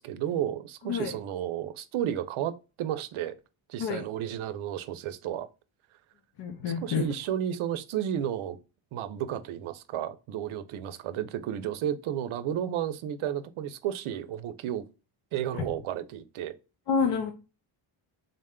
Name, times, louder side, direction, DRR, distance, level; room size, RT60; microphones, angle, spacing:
voice 1, 0.0-3.4 3.7-5.5 6.8-8.6 8.9-14.8 15.3-16.6, right 10 dB, 80° right, 0.6 m, -32 dB
voice 2, 0.8-1.1 3.8-4.1 6.4-7.1 15.5-15.6 16.9-17.3, left 6 dB, 60° left, 0.6 m, -28 dB
3.8 x 2.2 x 3.6 m
wide cardioid pair, 160°, 49 cm